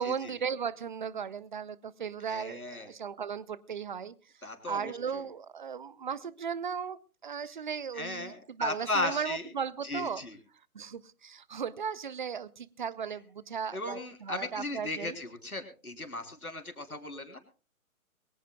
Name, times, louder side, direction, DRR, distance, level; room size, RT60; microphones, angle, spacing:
voice 1, 0.0-4.1 4.7-10.2 10.7-15.2, right 7 dB, 35° right, 20 dB, 0.6 m, -36 dB
voice 2, 2.3-2.9 4.4-5.2 7.9-9.4 9.8-10.4 13.7-17.4, left 2 dB, 85° left, 5 dB, 3.3 m, -36 dB
22.5 x 16.5 x 2.2 m, 0.35 s
figure-of-eight pair, 135°, 43 cm